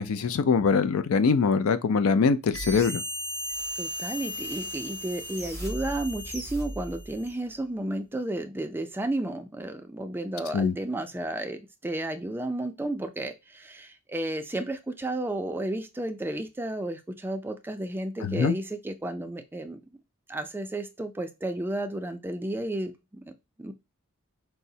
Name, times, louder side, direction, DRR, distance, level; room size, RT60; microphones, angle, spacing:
voice 1, 0.0-3.0 10.5-10.7 18.2-18.6, left 5 dB, 70° left, 0.4 m, -23 dB
sound 1, 2.5-7.4, equal, 15° left, 0.7 m, -35 dB
voice 2, 3.8-19.8 20.3-22.9 23.6-23.7, right 1 dB, 10° right, 0.3 m, -32 dB
4.6 x 2.0 x 2.7 m
head